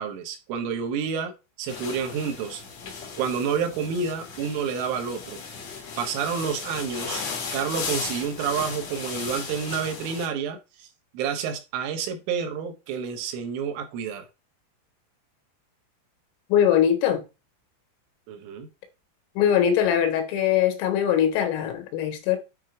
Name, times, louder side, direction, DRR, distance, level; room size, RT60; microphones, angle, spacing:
voice 1, 0.0-1.3 1.6-2.6 3.2-5.4 6.0-10.9 11.1-14.3 18.3-18.7, right 6 dB, 75° right, 3.4 m, -29 dB
sound 1, 1.7-10.3, left 5 dB, 65° left, 1.6 m, -36 dB
voice 2, 16.5-17.3 19.4-22.4, left 9 dB, 85° left, 4.1 m, -21 dB
9.1 x 4.1 x 4.8 m
omnidirectional pair, 6.0 m